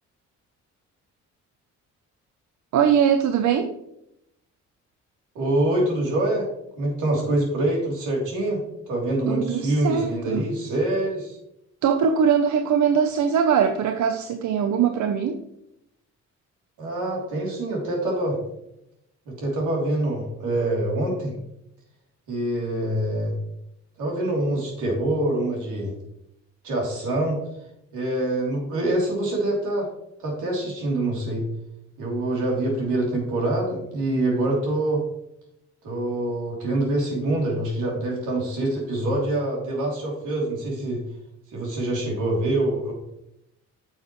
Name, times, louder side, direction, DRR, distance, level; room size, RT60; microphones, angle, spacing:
voice 1, 2.7-3.7 9.3-10.5 11.8-15.4, right 7 dB, 75° right, 7 dB, 0.7 m, -21 dB
voice 2, 5.3-6.5 6.8-11.4 16.8-18.4 19.3-21.3 22.3-23.3 24.0-25.9 26.6-27.4 27.9-29.9 30.2-31.5 32.0-35.0 35.8-41.0 41.5-42.9, right 1 dB, 90° right, -2 dB, 3.1 m, -25 dB
9.1 x 6.5 x 3.0 m, 0.81 s
cardioid pair, 90°, 30 cm